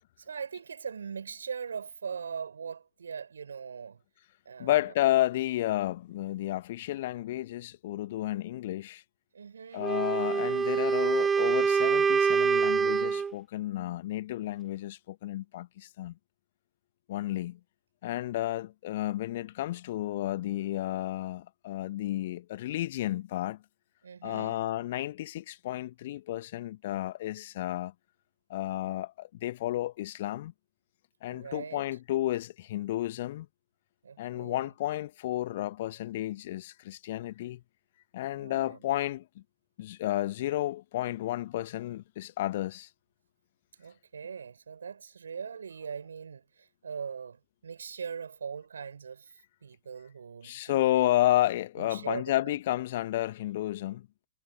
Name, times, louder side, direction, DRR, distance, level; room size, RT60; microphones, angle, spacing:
voice 1, 0.2-4.0 4.4-4.9 9.3-9.9 24.0-24.7 31.3-31.8 34.0-34.7 38.3-38.8 43.8-51.2 51.8-52.6, right 6 dB, 70° right, 6.0 m, -41 dB
voice 2, 4.6-9.0 9.7-16.2 17.1-17.6 18.0-23.6 24.2-27.9 28.5-30.5 31.2-33.5 34.2-37.6 38.1-39.4 39.8-42.9 50.4-54.1, left 14 dB, 50° left, 1.6 m, -31 dB
Wind instrument woodwind instrument, 9.8-13.3, right 6 dB, 15° right, 0.7 m, -25 dB
figure-of-eight pair, 100°, 0 cm